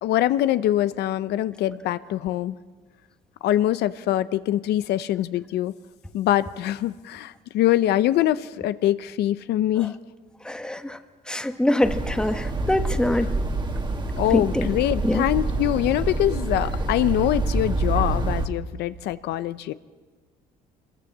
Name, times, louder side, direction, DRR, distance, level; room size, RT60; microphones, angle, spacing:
voice 1, 0.0-2.5 3.4-5.7 6.1-10.0 14.2-19.7, left 13 dB, 75° left, 14 dB, 0.7 m, -24 dB
voice 2, 10.4-11.0 11.3-13.3 14.3-14.7 15.0-15.2, left 1 dB, 5° left, 8 dB, 1.2 m, -24 dB
sound 1, 11.8-18.5, right 2 dB, 25° right, 2.0 m, -27 dB
24.5 x 21.5 x 7.4 m, 1.4 s
cardioid pair, 110°, 17 cm